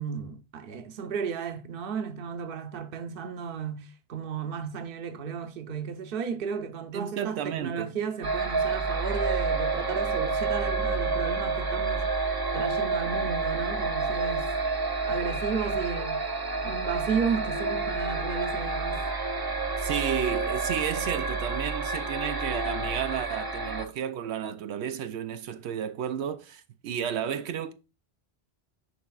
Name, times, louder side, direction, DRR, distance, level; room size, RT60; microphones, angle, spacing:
voice 1, 0.0-12.3 12.5-14.5 15.1-16.2 16.6-19.0, right 6 dB, 60° right, 0.9 m, -34 dB
voice 2, 6.9-7.9 19.8-27.7, right 8 dB, 90° right, 0.9 m, -32 dB
sound 1, 8.2-23.8, right 3 dB, 25° right, 0.6 m, -29 dB
11.0 x 4.2 x 2.3 m
omnidirectional pair, 1.1 m